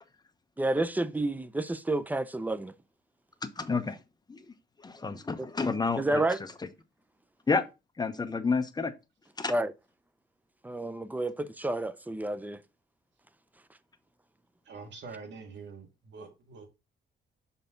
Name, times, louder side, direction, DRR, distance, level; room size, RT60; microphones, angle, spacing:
voice 1, 0.6-2.7 6.0-6.4 9.5-9.7 10.6-12.6, right 2 dB, 10° right, 0.6 m, -30 dB
voice 2, 3.4-4.0 4.3-4.5 4.8-6.5 7.5-7.6 8.0-8.9 9.4-9.5, left 4 dB, 20° left, 1.0 m, -30 dB
voice 3, 14.7-16.7, right 4 dB, 65° right, 2.1 m, -45 dB
6.7 x 4.2 x 3.8 m
cardioid pair, 90°, 20 cm